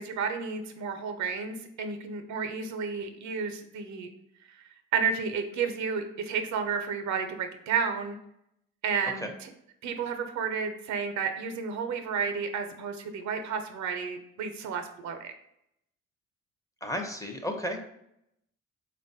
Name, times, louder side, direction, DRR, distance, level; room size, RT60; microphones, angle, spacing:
voice 1, 0.0-4.1 4.5-4.6 4.9-8.2 8.8-9.5 9.8-15.3, right 6 dB, 60° right, 6 dB, 0.5 m, -31 dB
voice 2, 16.8-17.8, equal, 10° left, 4 dB, 0.5 m, -33 dB
3.4 x 2.2 x 2.6 m, 0.77 s
supercardioid pair, 60°, 32 cm